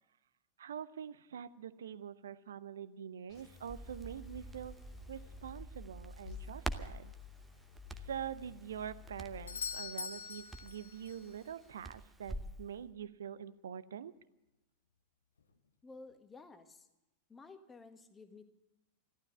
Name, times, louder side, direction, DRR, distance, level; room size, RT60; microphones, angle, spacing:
voice 1, 0.6-4.7 5.1-7.1 7.9-14.1, right 8 dB, 65° right, 15 dB, 0.7 m, -45 dB
sound 1, 3.3-5.6 6.2-9.8, left 10 dB, 40° left, 2.2 m, -54 dB
Crackle, 3.4-12.6, right 2 dB, 10° right, 0.9 m, -47 dB
Doorbell, 9.5-11.3 15.4-15.5, left 6 dB, 70° left, 1.1 m, -43 dB
voice 2, 15.8-16.9 17.3-18.5, left 3 dB, 15° left, 8 dB, 1.5 m, -53 dB
14.5 x 12.5 x 8.0 m, 0.96 s
figure-of-eight pair, 90°, 0 cm